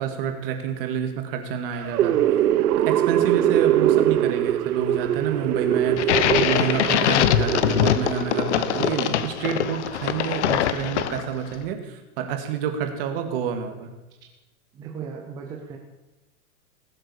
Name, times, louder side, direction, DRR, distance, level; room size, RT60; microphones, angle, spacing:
voice 1, 0.0-2.2 2.7-13.9, right 7 dB, 40° right, 7 dB, 2.0 m, -29 dB
sound 1, 1.7-9.0, right 12 dB, 85° right, 0.9 m, -22 dB
sound 2, 6.0-11.5, left 10 dB, 50° left, 1.0 m, -23 dB
voice 2, 14.7-15.8, right 6 dB, 10° right, 1 dB, 0.6 m, -36 dB
19.0 x 7.7 x 7.0 m, 1.1 s
hypercardioid pair, 165°, 45 cm